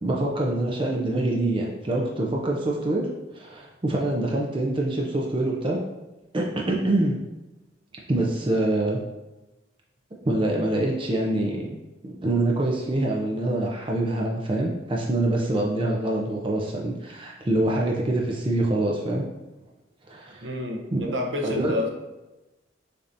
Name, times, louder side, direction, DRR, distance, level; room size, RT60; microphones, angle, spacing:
voice 1, 0.0-3.1 3.4-5.8 6.3-7.2 8.1-9.0 10.2-11.7 12.0-19.2 20.1-20.5 20.9-21.0 21.4-21.9, right 1 dB, 25° right, -2 dB, 0.5 m, -25 dB
voice 2, 20.4-21.9, left 1 dB, 70° right, 1 dB, 0.8 m, -29 dB
6.7 x 2.8 x 2.5 m, 1.0 s
head